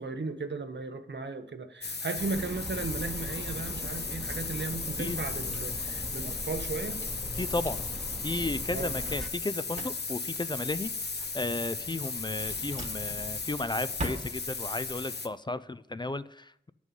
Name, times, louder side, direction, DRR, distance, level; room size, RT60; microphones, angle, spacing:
voice 1, 0.0-7.0 8.7-8.9, right 3 dB, 75° right, 8 dB, 0.8 m, -36 dB
sound 1, 1.8-15.3, left 4 dB, 65° left, 0.8 m, -36 dB
sound 2, 2.2-9.3, equal, ahead, 1.0 m, -40 dB
Drawer open or close, 6.8-15.0, right 1 dB, 40° right, 1.4 m, -44 dB
voice 2, 7.4-7.8 8.2-10.9 11.2-16.7, left 2 dB, 25° left, 15 dB, 0.4 m, -34 dB
9.1 x 6.3 x 5.4 m, 0.76 s
wide cardioid pair, 40°, 19 cm